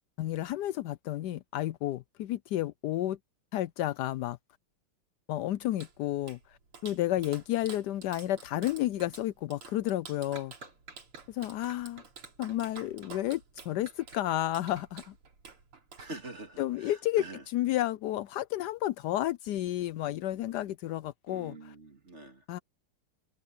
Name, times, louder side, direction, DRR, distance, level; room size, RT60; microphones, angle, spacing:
voice 1, 0.2-3.2 3.5-4.4 5.3-10.5 11.3-12.0 12.4-15.1 16.6-21.7 22.5-22.6, left 14 dB, 85° left, 0.9 m, -31 dB
Clapping, 5.5-16.6, right 4 dB, 85° right, 4.2 m, -50 dB
voice 2, 16.0-17.4 21.3-22.4, right 2 dB, 30° right, 2.9 m, -45 dB
omnidirectional pair, 2.4 m